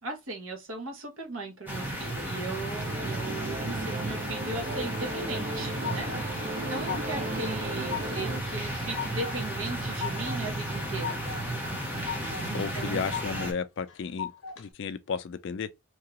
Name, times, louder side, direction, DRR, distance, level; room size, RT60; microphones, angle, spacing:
voice 1, 0.0-11.3 12.5-13.0, right 2 dB, 75° right, 1.0 m, -38 dB
sound 1, 1.7-13.5, right 1 dB, 10° right, 0.7 m, -34 dB
sound 2, 2.7-8.4, right 2 dB, 45° right, 0.5 m, -37 dB
sound 3, 5.3-6.2 6.6-7.3 7.6-8.3 8.6-9.4 9.7-10.4 10.7-11.4 11.8-12.5 12.8-13.5 13.9-14.6, left 8 dB, 75° left, 0.8 m, -37 dB
voice 2, 12.5-14.3 14.6-15.7, left 5 dB, 55° left, 0.3 m, -33 dB
2.8 x 2.4 x 2.9 m
head